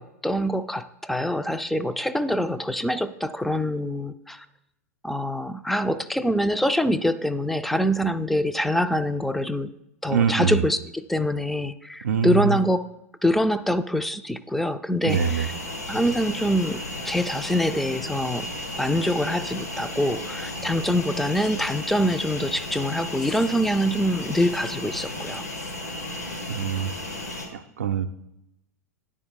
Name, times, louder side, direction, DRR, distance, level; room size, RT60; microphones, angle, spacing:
voice 1, 0.0-4.5 5.0-9.7 10.0-12.9 13.2-15.5 15.9-18.5 18.8-25.4, equal, ahead, 11 dB, 0.3 m, -25 dB
voice 2, 10.1-10.6 12.0-12.6 15.0-15.5 26.5-26.9 27.5-28.1, right 7 dB, 70° right, 6 dB, 0.4 m, -24 dB
sound 1, 15.1-27.5, left 1 dB, 85° left, 1.7 m, -34 dB
9.9 x 3.7 x 4.5 m, 0.85 s
figure-of-eight pair, 90°, 8 cm